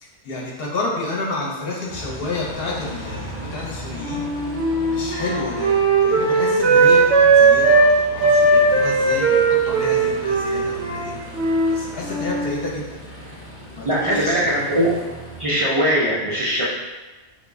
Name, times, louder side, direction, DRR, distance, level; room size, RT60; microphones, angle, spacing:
voice 1, 0.2-4.3 4.8-11.1 11.7-12.8 13.8-14.6, left 2 dB, 60° left, -3 dB, 0.8 m, -30 dB
Aircraft, 1.9-15.4, equal, 15° left, 0.5 m, -37 dB
Wind instrument woodwind instrument, 4.0-7.9 8.2-11.8 12.0-12.6, right 3 dB, 75° right, 0.9 m, -17 dB
voice 2, 13.9-14.9 15.4-16.6, equal, 55° right, -7 dB, 0.3 m, -20 dB
3.5 x 2.0 x 3.4 m, 1.1 s
omnidirectional pair, 1.2 m